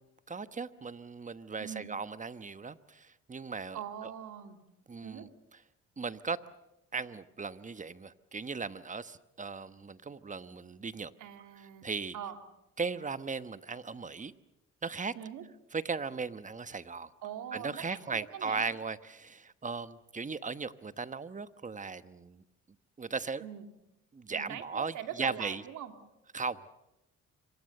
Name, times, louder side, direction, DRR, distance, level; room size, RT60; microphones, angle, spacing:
voice 1, 0.3-3.8 4.9-5.3 6.0-6.4 6.9-11.1 11.8-12.1 12.8-14.3 14.8-15.1 15.7-17.1 17.5-22.4 23.0-23.4 24.1-25.6 26.3-26.7, right 4 dB, 25° right, 14 dB, 1.1 m, -37 dB
voice 2, 3.7-4.6 5.0-5.3 11.2-11.9 12.1-12.4 15.1-15.4 17.2-18.7 23.4-23.7 24.3-25.9, right 10 dB, 80° right, 7 dB, 2.5 m, -42 dB
26.0 x 24.5 x 6.7 m, 0.92 s
cardioid pair, 90°, 30 cm